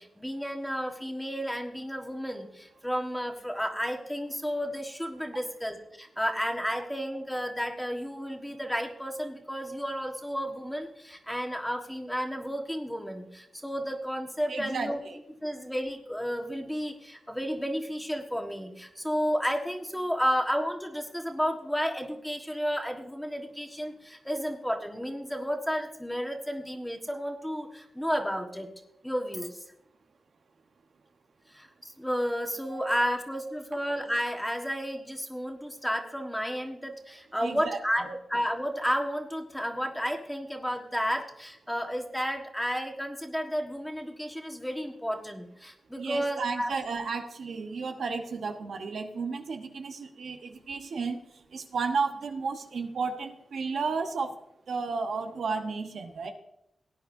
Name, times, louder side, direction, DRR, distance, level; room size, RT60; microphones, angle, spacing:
voice 1, 0.0-15.0 15.4-28.7 29.0-29.6 31.5-46.7, equal, 5° left, 3 dB, 1.5 m, -32 dB
voice 2, 14.5-15.2 20.2-20.3 32.7-33.1 37.4-37.8 46.0-54.4 54.7-56.3, right 4 dB, 80° right, 4 dB, 1.0 m, -33 dB
18.0 x 9.5 x 2.7 m, 0.79 s
wide cardioid pair, 85°, 0 cm